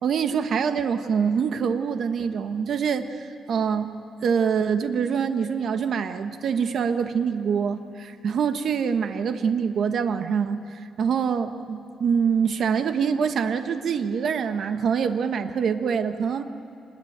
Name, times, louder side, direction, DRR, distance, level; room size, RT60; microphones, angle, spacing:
voice 1, 0.0-3.9 4.2-16.4, right 6 dB, 60° right, 8 dB, 1.4 m, -25 dB
26.0 x 21.5 x 8.9 m, 2.6 s
cardioid pair, 115°, 0 cm